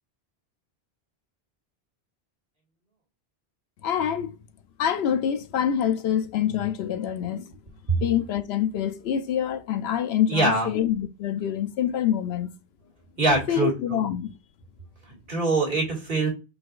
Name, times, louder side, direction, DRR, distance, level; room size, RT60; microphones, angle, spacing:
voice 1, 3.8-4.4 4.8-7.5 7.9-12.5 13.5-14.4, left 9 dB, 80° left, 0.8 m, -26 dB
voice 2, 10.3-10.7 13.2-14.0 15.1-16.3, right 2 dB, 55° right, 2.1 m, -24 dB
5.1 x 4.1 x 2.4 m
omnidirectional pair, 1.1 m